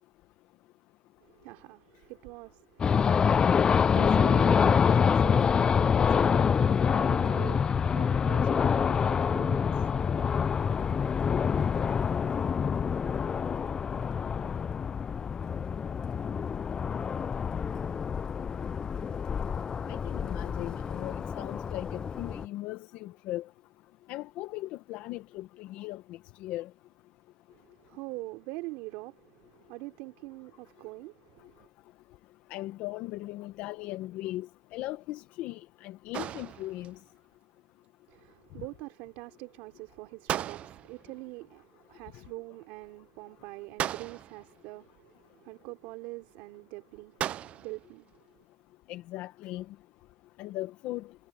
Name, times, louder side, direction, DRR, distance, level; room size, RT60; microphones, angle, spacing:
voice 1, 1.2-10.4 27.5-31.7 38.1-48.1, right 22 dB, 80° right, 3.4 m, -44 dB
sound 1, 2.8-22.4, left 6 dB, 30° left, 0.4 m, -26 dB
sound 2, 12.7-15.0 15.5-16.5 16.7-18.8 19.4-19.5, left 3 dB, 15° left, 0.8 m, -50 dB
voice 2, 19.9-23.5 24.1-26.7 32.5-37.0 48.9-49.6 50.4-51.1, left 16 dB, 70° left, 1.3 m, -38 dB
sound 3, 36.1-37.0 40.3-41.1 43.8-44.5 47.2-47.9, right 11 dB, 50° right, 0.5 m, -35 dB
supercardioid pair, 105°, 3 cm